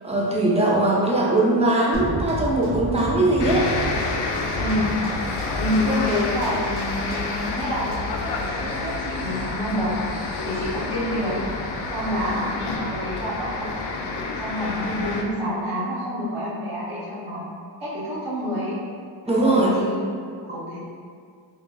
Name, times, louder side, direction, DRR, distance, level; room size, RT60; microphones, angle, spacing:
voice 1, 0.0-3.7 19.3-19.8, right 2 dB, 15° right, -5 dB, 0.7 m, -20 dB
sound 1, 1.9-7.5, equal, 60° right, 1.0 m, -31 dB
sound 2, 3.4-15.2, left 3 dB, 60° left, 0.5 m, -29 dB
voice 2, 4.6-4.9 5.6-10.0 10.4-11.4 11.9-17.4 17.8-18.7 19.3-20.0 20.4-20.8, equal, 85° right, -9 dB, 1.1 m, -28 dB
2.9 x 2.3 x 2.3 m, 2.2 s
supercardioid pair, 45°, 47 cm